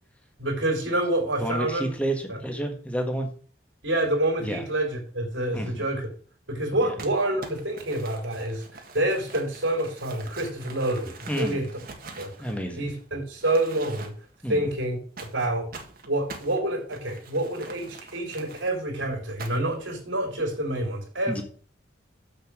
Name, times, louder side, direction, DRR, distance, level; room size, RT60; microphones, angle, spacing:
voice 1, 0.4-1.9 2.3-2.4 3.8-6.1 6.5-11.7 12.2-12.3 12.8-14.1 14.5-15.0 15.3-15.7 16.1-21.4, right 1 dB, 85° right, 0 dB, 3.5 m, -27 dB
voice 2, 1.4-3.3 4.4-4.6 5.5-5.8 6.7-6.8 11.3-11.6 12.4-12.9 14.4-14.7 21.3-21.4, right 1 dB, 5° left, 4 dB, 1.6 m, -30 dB
Crumpling crinkling, 7.0-13.0 13.4-14.4 15.2-18.7 19.4-19.8, right 3 dB, 50° right, 1.7 m, -44 dB
7.3 x 6.8 x 6.2 m, 0.44 s
head